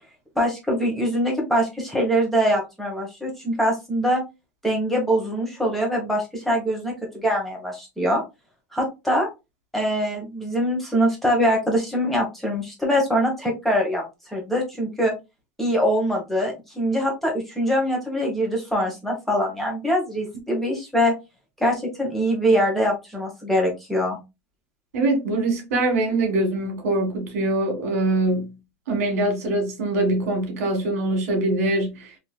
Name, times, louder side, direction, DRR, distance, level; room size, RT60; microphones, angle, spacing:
voice 1, 0.3-4.2 4.6-8.2 8.7-9.3 9.7-15.1 15.6-21.1 21.6-24.2, equal, 5° left, 1.1 m, -23 dB
voice 2, 24.9-28.6 28.9-32.1, right 2 dB, 80° right, 1.5 m, -23 dB
3.3 x 2.8 x 2.3 m
supercardioid pair, 145°, 8 cm